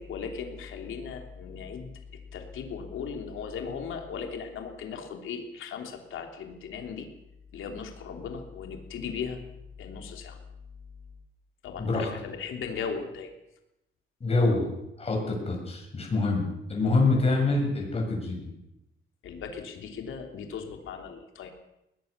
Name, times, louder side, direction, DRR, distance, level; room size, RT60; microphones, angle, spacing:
voice 1, 0.0-1.9 2.3-7.1 7.5-9.4 9.8-10.4 11.6-13.3 19.2-21.5, left 6 dB, 75° left, 4 dB, 3.4 m, -37 dB
voice 2, 14.2-14.7 15.0-18.5, left 3 dB, 30° left, 0 dB, 7.3 m, -26 dB
22.0 x 19.0 x 6.9 m, 0.87 s
cardioid pair, 145°, 21 cm